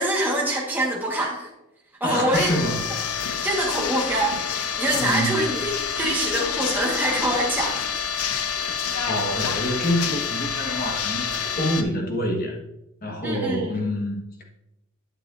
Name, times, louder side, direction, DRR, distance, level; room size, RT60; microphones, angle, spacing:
voice 1, 0.0-1.5 2.0-2.5 3.4-7.8 13.2-13.8, right 1 dB, 10° right, -3 dB, 1.3 m, -25 dB
voice 2, 2.0-2.8 4.9-5.5 9.0-12.6 13.0-14.2, equal, 40° left, 1 dB, 1.3 m, -26 dB
sound 1, 2.3-11.8, left 7 dB, 90° left, 0.6 m, -27 dB
10.0 x 6.8 x 2.6 m, 0.88 s
head